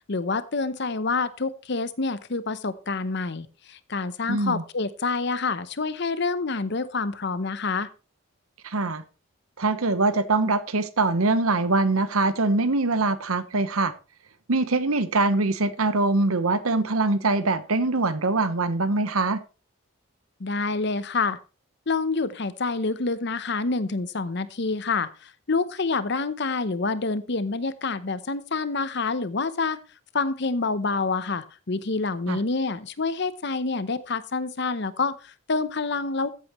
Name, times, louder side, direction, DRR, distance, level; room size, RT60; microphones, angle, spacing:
voice 1, 0.1-7.9 20.4-21.4 21.9-29.8 30.1-36.3, left 3 dB, 55° left, 0.8 m, -27 dB
voice 2, 4.3-4.6 8.6-9.0 9.6-13.9 14.5-19.4 32.3-32.4, right 3 dB, 90° right, 1.1 m, -23 dB
14.5 x 8.4 x 3.1 m
head